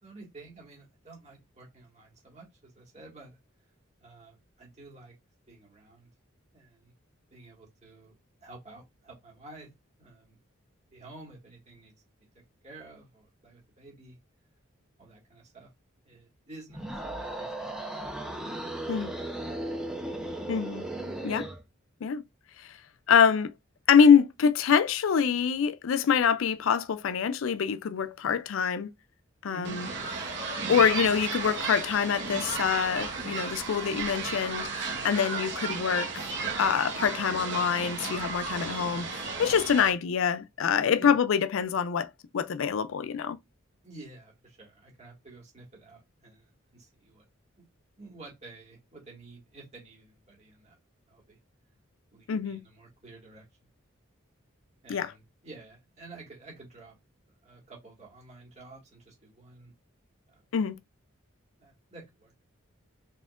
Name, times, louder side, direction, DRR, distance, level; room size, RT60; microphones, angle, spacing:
voice 1, 0.0-3.4 4.0-5.1 5.5-6.1 6.5-6.9 7.3-8.1 8.4-9.7 10.0-10.4 10.9-11.9 12.6-14.2 15.0-15.7 16.0-17.7 18.4-19.4 29.4-29.8 40.9-41.1 43.8-47.2 47.6-47.7 48.0-50.8 51.1-51.4 52.1-53.7 54.8-57.0 57.4-59.7 60.3-60.5 61.6-62.3, right 3 dB, 35° right, 1.9 m, -50 dB
sound 1, 16.7-21.6, right 1 dB, 5° right, 0.8 m, -36 dB
voice 2, 20.5-20.9 21.2-21.5 22.0-22.2 23.1-23.5 23.9-28.9 29.4-29.9 30.7-36.3 36.6-43.4 52.3-52.6 54.9-55.1 60.5-60.8, left 7 dB, 75° left, 0.4 m, -25 dB
sound 2, 29.6-39.9, right 4 dB, 55° right, 1.3 m, -34 dB
4.1 x 3.6 x 2.5 m
head